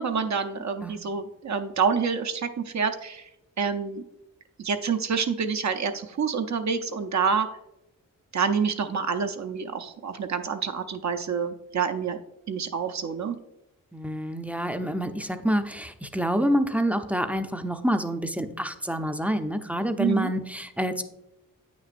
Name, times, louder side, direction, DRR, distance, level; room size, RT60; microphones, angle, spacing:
voice 1, 0.0-3.3 3.6-4.0 4.6-7.5 8.3-12.2 12.5-13.4 20.0-20.3, right 6 dB, 55° right, 7 dB, 0.6 m, -27 dB
voice 2, 13.9-21.0, equal, 5° right, 7 dB, 0.5 m, -27 dB
8.8 x 6.1 x 2.5 m, 0.89 s
cardioid pair, 70°, 34 cm